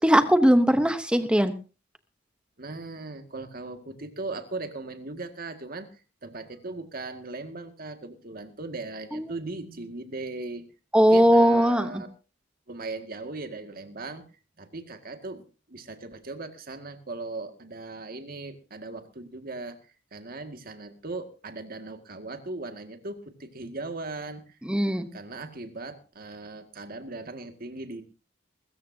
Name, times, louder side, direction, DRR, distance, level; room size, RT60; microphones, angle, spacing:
voice 1, 0.0-1.5 9.1-9.3 10.9-12.0 24.7-25.1, equal, 5° right, 10 dB, 0.9 m, -20 dB
voice 2, 2.6-5.9 6.2-10.7 11.1-12.1 12.7-14.3 14.6-15.4 15.7-19.8 20.1-24.4 25.1-28.0, right 3 dB, 50° right, 7 dB, 1.9 m, -38 dB
22.0 x 14.0 x 2.7 m, 0.32 s
head